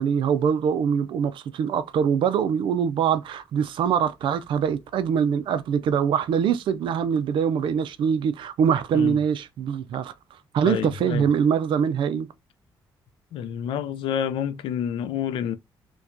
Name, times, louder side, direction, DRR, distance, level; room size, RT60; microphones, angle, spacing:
voice 1, 0.0-10.1 10.5-12.3, right 7 dB, 70° right, 0.4 m, -23 dB
voice 2, 10.6-11.3 13.3-15.5, left 9 dB, 90° left, 0.5 m, -28 dB
4.6 x 2.2 x 2.6 m
cardioid pair, 110°, 9 cm